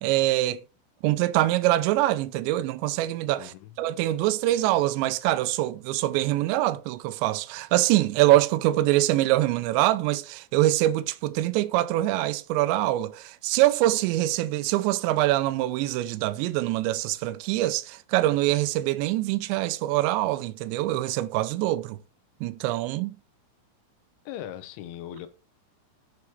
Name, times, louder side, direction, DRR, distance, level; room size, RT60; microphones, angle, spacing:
voice 1, 0.0-0.6 1.0-22.0 22.4-23.2, right 15 dB, 85° right, 2.6 m, -24 dB
voice 2, 3.4-3.8 24.3-25.3, left 11 dB, 75° left, 3.1 m, -39 dB
9.9 x 5.0 x 4.6 m
omnidirectional pair, 5.8 m